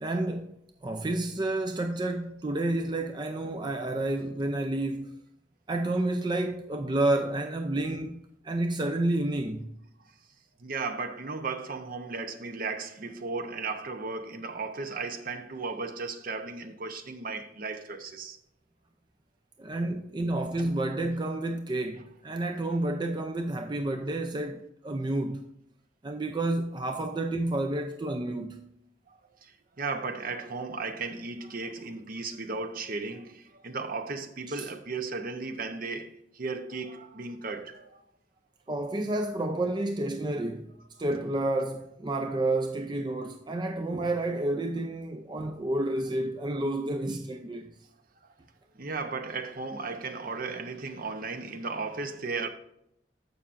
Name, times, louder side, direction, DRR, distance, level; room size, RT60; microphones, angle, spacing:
voice 1, 0.0-5.1 5.7-9.8 19.6-25.4 26.0-28.7 34.5-34.7 38.7-40.7 41.0-47.7, right 2 dB, 25° right, 0.4 m, -30 dB
voice 2, 10.6-18.4 20.6-20.7 29.1-38.0 48.2-48.3 48.7-52.5, right 4 dB, 50° right, 0.8 m, -35 dB
14.5 x 5.6 x 2.5 m
head